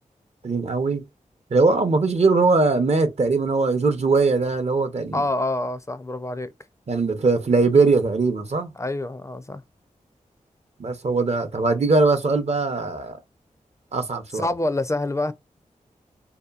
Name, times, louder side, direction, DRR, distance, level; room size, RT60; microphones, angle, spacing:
voice 1, 0.4-1.0 1.5-5.2 6.9-8.7 10.8-13.2 13.9-14.5, right 3 dB, 50° right, 0.6 m, -21 dB
voice 2, 5.1-6.5 8.8-9.6 14.3-15.3, left 2 dB, 20° left, 0.4 m, -26 dB
2.8 x 2.2 x 2.3 m
cardioid pair, 40°, 14 cm